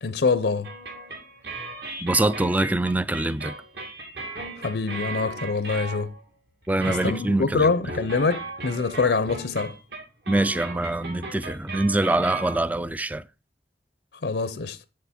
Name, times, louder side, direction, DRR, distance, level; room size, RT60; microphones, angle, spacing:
voice 1, 0.0-0.7 4.6-6.1 6.9-9.8 14.2-14.8, left 4 dB, 75° left, 0.6 m, -25 dB
sound 1, 0.6-6.3 6.6-12.9, right 2 dB, 70° right, 2.5 m, -37 dB
voice 2, 2.0-3.6 6.7-7.7 10.3-13.2, right 2 dB, 10° right, 0.3 m, -24 dB
7.5 x 6.6 x 4.2 m
head